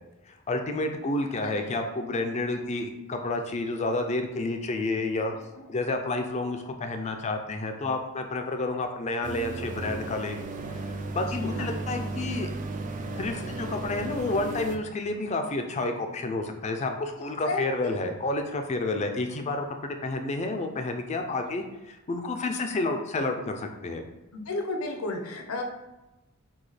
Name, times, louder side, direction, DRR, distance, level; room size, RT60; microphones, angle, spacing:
voice 1, 0.5-5.3 5.7-10.4 10.7-12.5 13.2-24.1, left 2 dB, 30° left, 5 dB, 0.4 m, -30 dB
voice 2, 1.4-1.7 5.3-5.7 11.4-11.7 17.1-18.1 21.5-21.7 24.3-25.6, left 2 dB, 70° left, 3 dB, 0.7 m, -34 dB
sound 1, 9.2-14.8, right 2 dB, 35° right, 0.3 m, -35 dB
6.0 x 2.3 x 3.3 m, 1.0 s
head